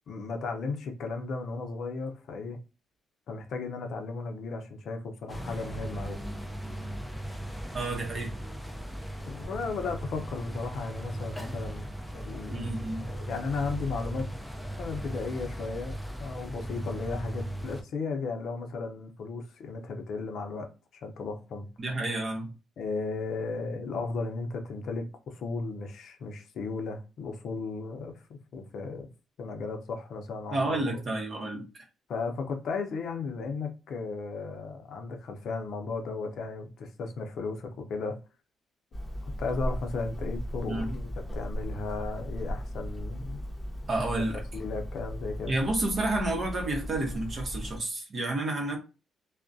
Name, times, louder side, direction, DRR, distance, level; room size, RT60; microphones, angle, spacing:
voice 1, 0.1-2.6 3.3-6.2 9.3-12.7 13.1-14.3 14.8-20.7 21.0-21.7 22.8-29.1 29.4-31.0 32.1-38.2 39.2-43.5 44.5-45.6, left 4 dB, 65° left, 0.5 m, -35 dB
sound 1, 5.3-17.8, equal, ahead, 0.4 m, -38 dB
voice 2, 7.7-8.3 12.5-13.0 21.8-22.5 30.5-31.8 40.7-40.9 43.9-44.4 45.5-48.8, right 2 dB, 45° right, 0.8 m, -30 dB
Hammer, 38.9-47.8, equal, 15° left, 0.8 m, -37 dB
2.3 x 2.1 x 2.5 m
cardioid pair, 90°, 0 cm